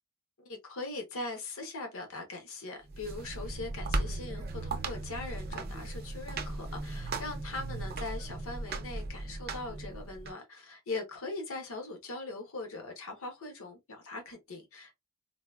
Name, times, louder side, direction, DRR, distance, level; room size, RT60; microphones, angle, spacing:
voice 1, 0.4-15.0, left 3 dB, 65° left, 1.1 m, -41 dB
sound 1, 2.8-10.3, right 2 dB, 45° right, 0.6 m, -37 dB
3.8 x 2.3 x 2.3 m
head